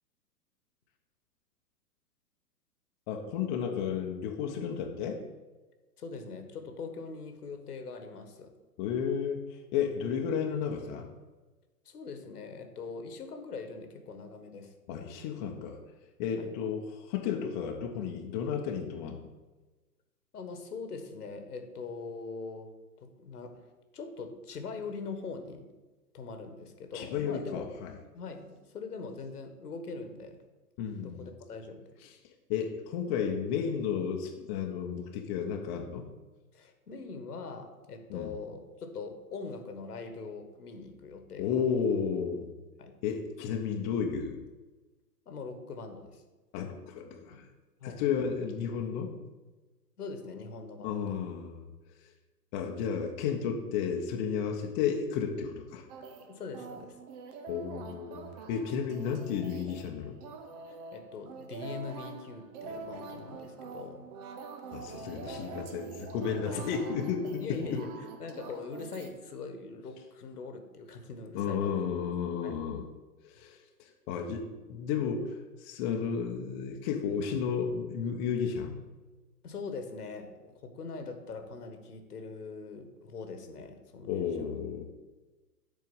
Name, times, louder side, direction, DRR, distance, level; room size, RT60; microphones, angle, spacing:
voice 1, 3.1-5.2 8.8-9.4 9.7-11.1 14.9-15.8 16.2-19.2 26.9-27.9 30.8-31.3 32.5-36.1 38.1-38.3 41.4-42.5 43.0-44.4 46.5-47.4 47.8-49.1 50.8-51.6 52.5-55.8 57.5-60.2 64.7-67.8 71.3-72.9 73.2-75.3 75.6-78.7 84.1-84.8, left 7 dB, 30° left, 2 dB, 1.0 m, -32 dB
voice 2, 6.0-8.5 11.8-14.7 16.4-16.5 20.3-22.7 23.0-23.6 23.9-25.7 26.1-27.7 28.1-30.4 30.9-32.0 36.5-41.5 42.8-42.9 45.2-46.2 47.3-47.4 47.8-48.0 50.0-51.2 56.3-56.9 60.7-64.0 65.0-65.4 66.5-66.6 67.4-67.9 68.2-71.9 72.4-72.6 79.4-84.5, left 4 dB, 70° left, 7 dB, 1.6 m, -42 dB
sound 1, 55.9-69.1, right 4 dB, 25° right, 0.7 m, -45 dB
7.9 x 4.7 x 7.1 m, 1.2 s
figure-of-eight pair, 120°, 48 cm